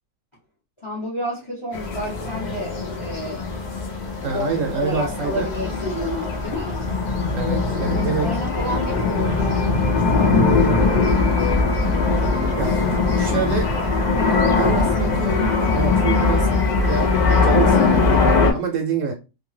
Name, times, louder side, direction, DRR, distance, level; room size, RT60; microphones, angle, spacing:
voice 1, 0.8-3.4 4.2-4.5 4.8-6.8 7.9-11.1, left 1 dB, 30° left, -2 dB, 0.6 m, -31 dB
sound 1, 1.7-18.5, left 3 dB, 75° left, 0.4 m, -20 dB
voice 2, 4.2-5.5 7.3-8.3 12.6-12.8 13.2-13.7 14.6-16.5 16.8-17.1 17.4-19.1, right 5 dB, 65° right, 3 dB, 0.9 m, -26 dB
Percussion, 9.3-10.0 10.3-12.1 12.3-13.0 13.3-13.8 14.3-15.9 16.3-17.0, left 5 dB, 55° left, 0.8 m, -33 dB
2.6 x 2.3 x 3.1 m, 0.28 s
omnidirectional pair, 1.7 m